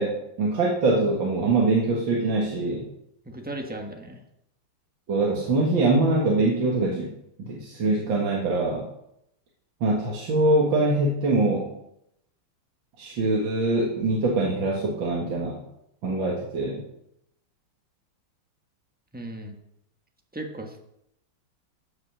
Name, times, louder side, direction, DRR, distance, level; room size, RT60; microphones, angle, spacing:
voice 1, 0.0-2.9 5.1-7.1 7.4-8.9 9.8-11.7 13.0-15.6 16.0-16.8, right 2 dB, 60° right, -3 dB, 2.4 m, -23 dB
voice 2, 3.2-4.2 19.1-19.6 20.3-20.9, right 1 dB, 5° right, 3 dB, 0.9 m, -36 dB
15.0 x 5.8 x 6.1 m, 0.80 s
omnidirectional pair, 2.4 m